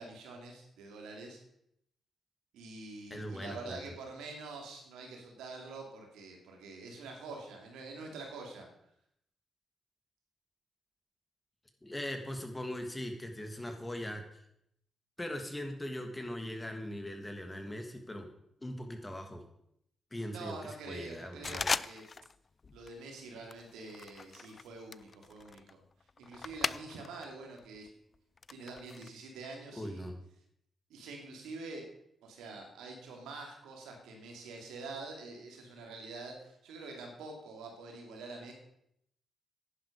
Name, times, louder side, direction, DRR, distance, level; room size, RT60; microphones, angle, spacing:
voice 1, 0.0-1.4 2.5-8.7 20.3-22.0 22.7-25.8 26.2-27.9 28.5-30.0 30.9-31.9 32.2-38.5, right 3 dB, 85° right, 2 dB, 2.6 m, -46 dB
voice 2, 3.1-3.8 11.8-14.4 15.2-18.3 18.6-19.4 20.1-21.7 29.7-30.2, left 1 dB, 20° left, 5 dB, 2.6 m, -40 dB
sound 1, 21.4-22.4 22.6-23.0 23.5-27.3 27.6-29.1, left 4 dB, 45° left, 0.4 m, -38 dB
10.5 x 10.0 x 5.2 m, 0.74 s
supercardioid pair, 45°, 0 cm